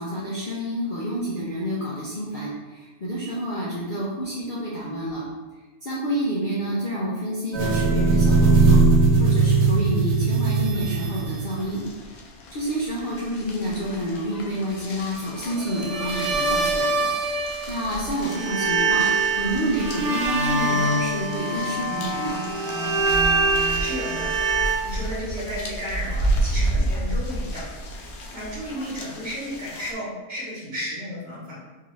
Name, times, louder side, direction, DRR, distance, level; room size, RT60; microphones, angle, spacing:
voice 1, 0.0-5.3 5.8-8.8 9.2-11.8 12.5-17.1 17.7-19.1 19.4-22.4, right 1 dB, 50° left, -7 dB, 0.6 m, -28 dB
sound 1, 7.5-11.8 15.6-18.0 18.3-24.8, right 3 dB, 85° right, 1.2 m, -22 dB
sound 2, 10.7-29.9, right 1 dB, 85° left, 1.1 m, -32 dB
voice 2, 23.8-24.3 24.8-27.7 28.3-31.6, equal, 45° right, -7 dB, 1.4 m, -33 dB
3.9 x 2.7 x 3.1 m, 1.2 s
omnidirectional pair, 1.5 m